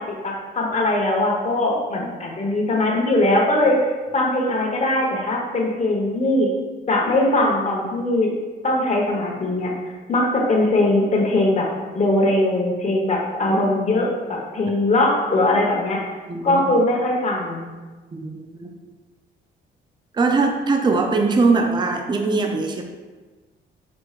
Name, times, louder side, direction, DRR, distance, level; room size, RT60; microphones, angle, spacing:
voice 1, 0.1-3.8 4.1-6.5 6.9-8.3 8.6-9.7 10.1-11.7 11.9-16.0 16.4-17.7, left 2 dB, 35° left, -1 dB, 1.1 m, -20 dB
voice 2, 16.3-16.7 18.1-18.7 20.2-22.8, right 3 dB, 20° right, 3 dB, 0.5 m, -21 dB
4.4 x 4.4 x 2.4 m, 1.3 s
cardioid pair, 90°, 20 cm